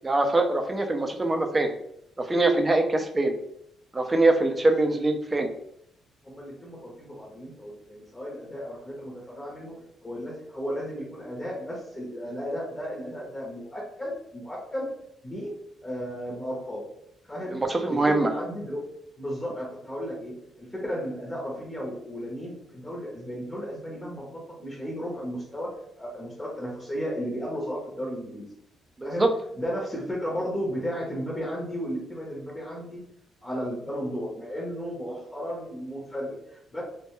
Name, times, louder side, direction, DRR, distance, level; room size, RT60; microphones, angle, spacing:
voice 1, 0.0-1.7 2.2-3.3 3.9-5.5 17.5-18.3 29.0-29.3, right 2 dB, 20° right, 5 dB, 0.4 m, -23 dB
voice 2, 6.2-9.8 10.0-14.9 15.2-15.5 15.8-16.9 17.3-17.6 17.9-18.9 19.2-25.7 26.0-28.5 29.0-29.3 29.5-33.0 33.4-36.8, equal, 20° left, -3 dB, 0.8 m, -34 dB
2.2 x 2.1 x 3.0 m, 0.76 s
cardioid pair, 90°, 0 cm